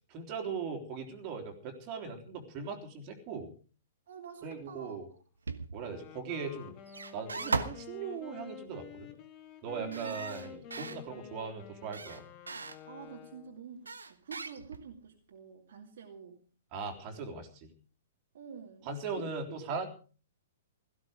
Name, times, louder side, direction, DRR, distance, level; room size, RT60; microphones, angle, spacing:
voice 1, 0.1-3.5 4.4-5.1 5.7-6.8 7.1-9.1 9.6-12.3 16.7-17.7 18.8-19.9, right 5 dB, 30° right, 3 dB, 3.5 m, -39 dB
voice 2, 4.1-5.0 9.8-10.2 12.8-16.4 18.3-19.3, right 7 dB, 55° right, 2 dB, 2.4 m, -47 dB
sound 1, 5.5-5.9 6.9-7.9 9.9-11.0 11.9-12.8 13.9-15.0, right 4 dB, 70° right, 1.3 m, -37 dB
Wind instrument woodwind instrument, 5.6-13.6, left 9 dB, 30° left, 2.1 m, -50 dB
17.0 x 15.0 x 5.0 m, 0.39 s
figure-of-eight pair, 110°, 0 cm